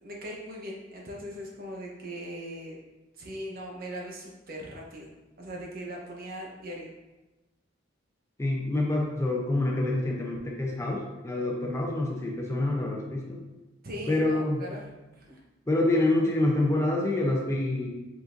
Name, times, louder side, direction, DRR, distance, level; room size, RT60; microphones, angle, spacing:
voice 1, 0.0-2.8 3.2-5.1 5.4-6.9 13.8-14.8 15.1-15.4, equal, 50° right, -2 dB, 0.9 m, -39 dB
voice 2, 8.4-13.4 14.1-14.6 15.7-17.9, left 2 dB, 15° left, -1 dB, 0.6 m, -27 dB
5.3 x 3.9 x 2.6 m, 1.1 s
head